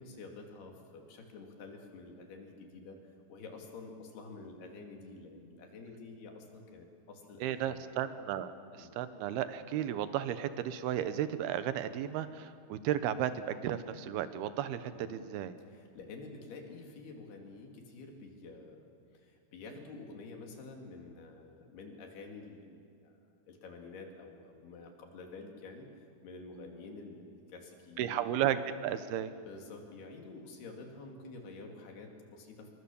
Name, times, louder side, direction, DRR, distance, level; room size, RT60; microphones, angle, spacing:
voice 1, 0.0-3.0 3.3-7.8 8.8-8.9 14.9-15.1 15.7-18.9 19.1-23.2 23.5-25.9 26.2-28.4 29.5-32.7, left 3 dB, 75° left, 2 dB, 4.6 m, -49 dB
voice 2, 7.4-15.5 28.0-29.3, right 10 dB, 80° right, 11 dB, 2.9 m, -34 dB
26.5 x 22.5 x 7.1 m, 2.4 s
omnidirectional pair, 4.6 m